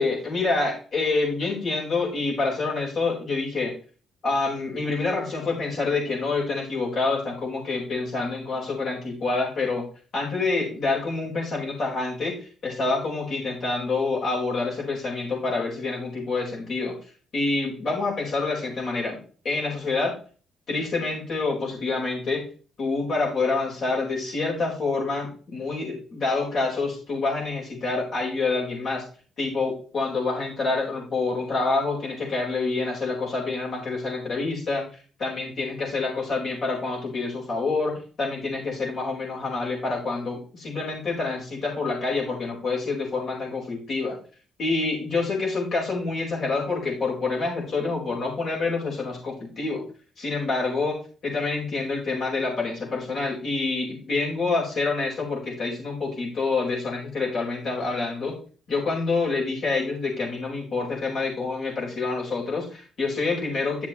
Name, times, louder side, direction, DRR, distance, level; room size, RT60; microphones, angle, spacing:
voice 1, 0.0-3.7 4.2-9.8 10.1-12.4 12.6-17.0 17.3-20.2 20.7-22.4 22.8-29.0 29.4-34.8 35.2-44.2 44.6-49.8 50.2-51.0 51.2-58.4 58.7-63.9, left 3 dB, 55° left, -3 dB, 4.8 m, -27 dB
10.0 x 7.2 x 3.2 m, 0.40 s
cardioid pair, 90°, 0 cm